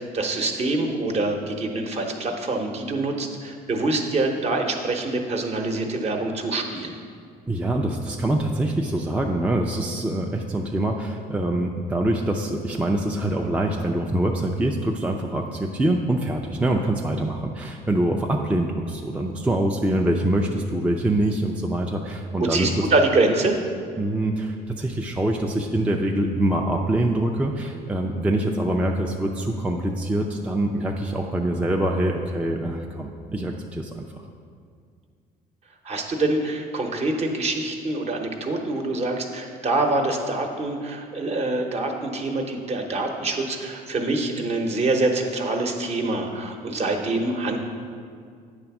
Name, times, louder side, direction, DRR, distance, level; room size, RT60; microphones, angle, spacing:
voice 1, 0.1-7.0 22.4-23.6 35.8-47.6, right 2 dB, 40° right, 3 dB, 0.9 m, -25 dB
voice 2, 7.5-22.9 24.0-34.2, right 1 dB, 5° right, 1 dB, 0.4 m, -24 dB
8.9 x 3.4 x 5.9 m, 2.2 s
cardioid pair, 110°, 17 cm